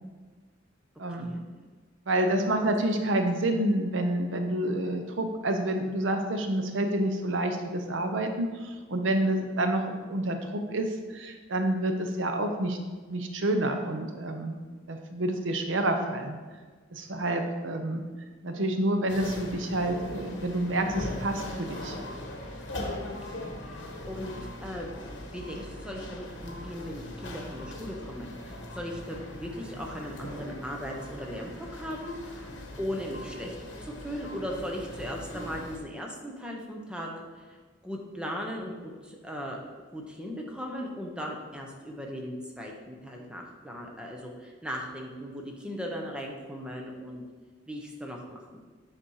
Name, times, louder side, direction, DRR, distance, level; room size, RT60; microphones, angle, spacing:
voice 1, 2.1-12.8 13.1-14.6 14.9-16.4 16.9-18.0 18.4-21.9, right 1 dB, 80° right, 5 dB, 0.8 m, -28 dB
sound 1, 19.1-35.8, left 1 dB, 70° left, 1.2 m, -40 dB
voice 2, 23.2-24.3 24.6-25.0 25.3-32.5 32.8-39.6 39.9-47.2 47.7-48.6, equal, 5° right, 0 dB, 1.0 m, -38 dB
8.7 x 4.2 x 4.8 m, 1.4 s
head